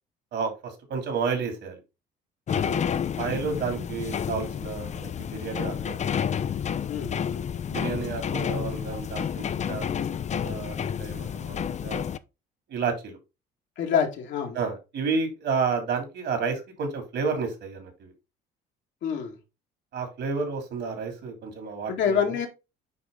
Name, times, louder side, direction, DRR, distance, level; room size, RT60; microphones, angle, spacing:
voice 1, 0.3-1.8 3.2-6.0 7.7-9.9 10.4-12.1 12.7-13.2 14.5-18.1 19.9-22.4, right 5 dB, 65° right, 3.0 m, -31 dB
voice 2, 2.5-2.8 6.9-7.2 13.8-14.6 19.0-19.4 21.9-22.5, left 7 dB, 70° left, 1.9 m, -26 dB
sound 1, 2.5-12.2, left 8 dB, 35° left, 0.5 m, -30 dB
9.3 x 3.2 x 3.8 m
supercardioid pair, 75°, 20 cm